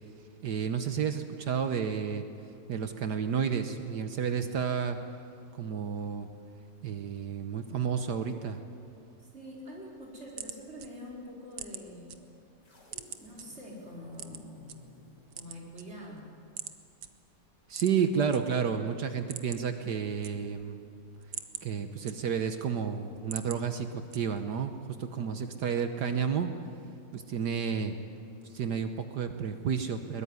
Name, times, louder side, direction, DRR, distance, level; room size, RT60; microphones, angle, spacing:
voice 1, 0.0-5.0 5.5-6.3 6.8-8.6 17.7-20.8 21.2-26.6 27.1-28.0 28.4-30.2, right 7 dB, 65° right, 7 dB, 1.6 m, -31 dB
voice 2, 9.2-12.2 13.2-14.9 15.3-16.3, left 1 dB, 35° right, -2 dB, 4.9 m, -45 dB
sound 1, 9.9-12.2 12.5-13.4 14.1-14.8 15.2-16.2 16.6-16.7 17.0-17.1 17.7-18.4 18.7-18.8 19.1-19.8 20.0-20.7 21.1-22.6 23.0-23.6 24.1-24.5, right 9 dB, 90° right, 1.8 m, -42 dB
sound 2, 12.6-16.9, left 1 dB, 65° left, 4.2 m, -59 dB
22.5 x 20.0 x 9.7 m, 2.6 s
omnidirectional pair, 2.0 m